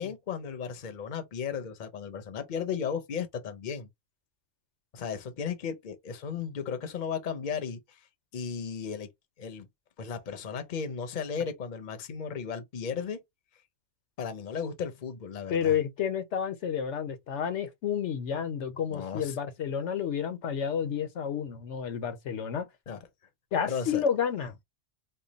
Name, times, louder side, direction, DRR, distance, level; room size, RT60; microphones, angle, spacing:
voice 1, 0.0-3.9 4.9-8.0 8.3-9.1 9.4-9.7 10.0-13.2 14.2-15.8 18.9-19.4 22.9-23.0 23.7-24.0, left 6 dB, 45° left, 0.8 m, -35 dB
voice 2, 15.5-22.7 23.5-24.6, left 8 dB, 85° left, 1.0 m, -30 dB
3.1 x 2.2 x 3.9 m
omnidirectional pair, 1.2 m